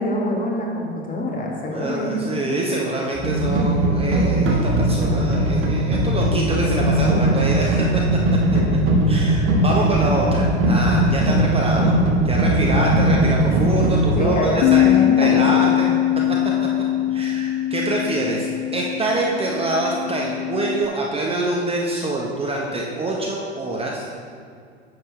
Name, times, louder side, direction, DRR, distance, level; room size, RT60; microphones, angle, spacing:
voice 1, 0.0-2.6 8.5-8.8 12.6-13.0 14.2-16.0, left 1 dB, 25° left, -2 dB, 1.9 m, -25 dB
voice 2, 1.7-7.8 9.1-14.8 15.2-15.9 17.1-24.1, right 2 dB, 15° right, -2 dB, 1.0 m, -25 dB
sound 1, 3.1-14.1, right 1 dB, 35° right, 1.7 m, -19 dB
Bass guitar, 14.6-20.9, left 13 dB, 45° left, 0.4 m, -21 dB
9.9 x 6.7 x 3.2 m, 2.3 s
hypercardioid pair, 85°, 33 cm